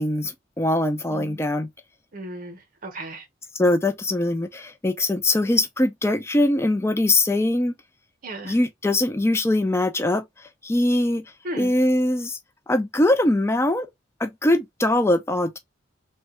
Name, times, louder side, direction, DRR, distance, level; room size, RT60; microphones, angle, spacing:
voice 1, 0.0-1.7 3.5-7.7 8.4-10.2 10.6-11.2 11.6-12.4 12.7-13.9 14.2-15.6, left 1 dB, 15° left, 0.4 m, -22 dB
voice 2, 1.1-1.4 2.1-3.2 8.2-8.5 11.4-11.7, right 1 dB, 45° right, 0.8 m, -35 dB
3.1 x 2.2 x 2.9 m
head